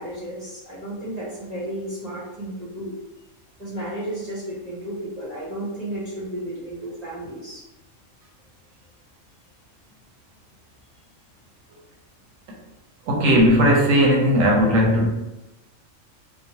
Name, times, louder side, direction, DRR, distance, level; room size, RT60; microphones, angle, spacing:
voice 1, 0.0-3.0 3.6-7.6, right 1 dB, 40° right, -7 dB, 0.6 m, -33 dB
voice 2, 13.1-15.1, equal, 85° right, -1 dB, 1.1 m, -17 dB
3.0 x 2.0 x 2.7 m, 0.99 s
omnidirectional pair, 1.4 m